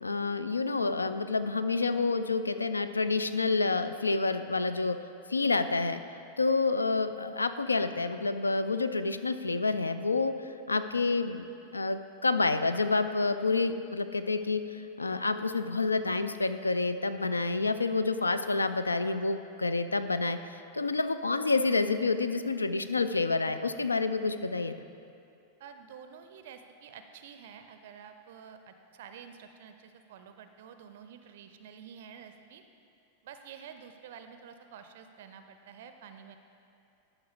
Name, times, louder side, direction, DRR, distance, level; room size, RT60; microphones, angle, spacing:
voice 1, 0.0-5.0 5.3-6.0 6.4-10.3 10.7-11.5 11.7-24.8, left 3 dB, 80° left, 11 dB, 0.3 m, -28 dB
voice 2, 25.6-32.6 33.2-36.4, right 7 dB, 55° right, 8 dB, 0.4 m, -49 dB
12.0 x 5.7 x 3.5 m, 2.6 s
figure-of-eight pair, 90°, 0 cm